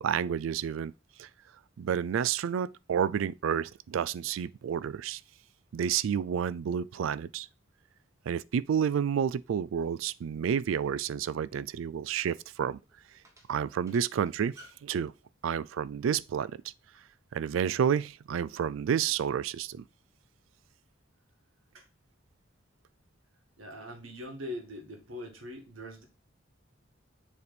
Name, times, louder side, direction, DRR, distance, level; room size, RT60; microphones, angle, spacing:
voice 1, 0.0-0.9 1.2-1.3 1.8-5.2 5.7-7.5 8.3-12.8 13.5-15.1 15.4-16.6 17.3-19.8, right 8 dB, 75° right, 0.3 m, -30 dB
sound 1, 10.8-14.9, equal, 15° right, 1.2 m, -58 dB
voice 2, 23.6-26.0, left 1 dB, 90° right, 1.8 m, -42 dB
7.0 x 3.4 x 4.1 m
head